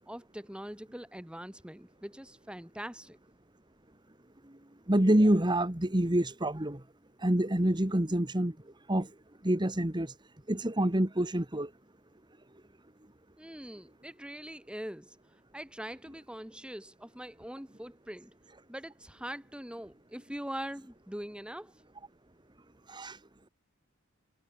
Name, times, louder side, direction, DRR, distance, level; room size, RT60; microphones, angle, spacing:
voice 1, 0.1-3.2 13.4-15.2 15.5-18.3 18.7-21.7, equal, 5° right, 2.9 m, -42 dB
voice 2, 4.9-6.8 7.2-8.5 8.9-9.1 9.4-10.1 10.5-11.7 22.9-23.2, right 1 dB, 20° right, 1.6 m, -27 dB
head